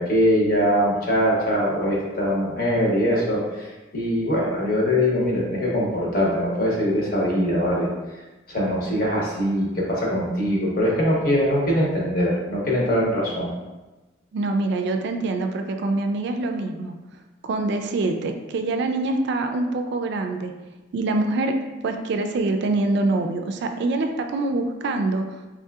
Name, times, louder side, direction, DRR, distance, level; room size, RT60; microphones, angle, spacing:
voice 1, 0.0-7.9 8.5-13.5, equal, 55° left, -4 dB, 0.9 m, -22 dB
voice 2, 14.3-16.9 17.4-20.5 20.9-21.5 21.8-25.2, right 2 dB, 65° right, 6 dB, 0.3 m, -25 dB
3.6 x 2.7 x 2.3 m, 1.1 s
head